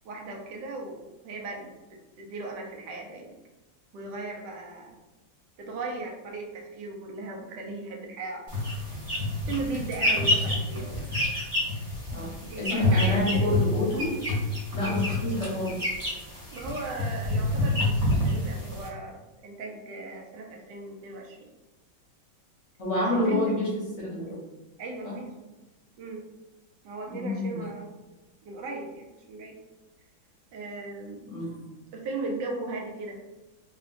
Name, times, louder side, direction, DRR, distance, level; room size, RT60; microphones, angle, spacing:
voice 1, 0.0-1.7 2.2-3.3 3.9-4.9 5.6-8.4 9.5-11.1 12.4-13.5 14.8-15.1 16.5-21.5 22.9-23.5 24.8-25.4 26.0-26.3 26.8-27.9 28.4-29.6 30.5-31.3 31.9-33.2, right 3 dB, 70° right, 0 dB, 1.2 m, -37 dB
sound 1, 8.5-18.9, left 1 dB, 20° right, 1.1 m, -28 dB
voice 2, 12.6-14.1 14.7-15.9 22.8-23.8 24.1-24.3 25.0-25.2 27.1-27.7 31.3-31.6, left 1 dB, 50° left, -6 dB, 1.0 m, -28 dB
3.3 x 2.8 x 2.5 m, 1.1 s
omnidirectional pair, 2.2 m